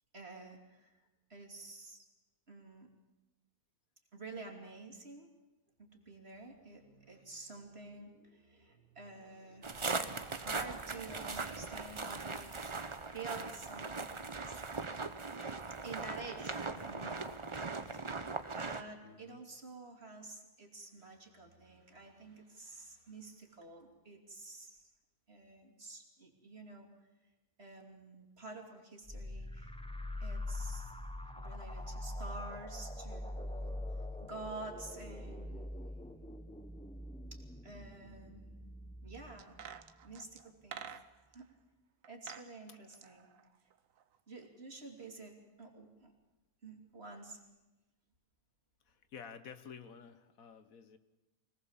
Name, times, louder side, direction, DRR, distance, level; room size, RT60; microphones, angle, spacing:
voice 1, 0.1-0.9 1.3-2.1 2.5-2.9 4.1-5.3 5.8-14.6 15.8-24.9 25.3-26.9 27.6-29.8 30.2-30.9 31.3-35.7 37.3-39.5 40.0-40.9 41.3-41.5 42.1-43.3 44.3-46.1 46.6-47.4, right 3 dB, 45° right, 2 dB, 3.1 m, -50 dB
sound 1, 9.6-18.8, right 4 dB, 25° right, 0.7 m, -40 dB
voice 2, 19.0-19.4 21.0-21.1 31.2-31.6 42.9-43.0 48.8-51.0, left 6 dB, 70° left, 11 dB, 1.5 m, -52 dB
sound 2, 29.0-40.4, left 1 dB, 5° left, 0.5 m, -44 dB
sound 3, 39.4-41.4 42.0-42.5 42.8-44.2 44.4-44.5, right 8 dB, 70° right, 1.3 m, -49 dB
25.5 x 18.5 x 7.3 m, 1.1 s
omnidirectional pair, 1.5 m